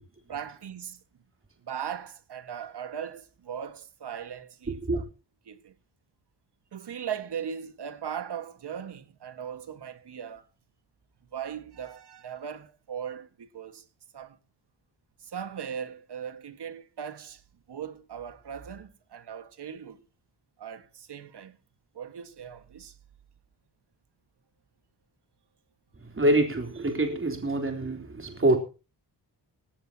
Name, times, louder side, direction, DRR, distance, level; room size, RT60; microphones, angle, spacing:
voice 1, 0.3-1.0 1.6-5.0 5.5-5.7 6.7-10.5 11.3-13.9 14.1-14.4 15.2-17.4 17.7-20.0 20.6-21.6 21.9-23.0, right 8 dB, 70° right, 1.7 m, -38 dB
voice 2, 26.0-28.6, right 1 dB, 30° right, 3.5 m, -25 dB
18.5 x 16.0 x 2.9 m
cardioid pair, 75°, 41 cm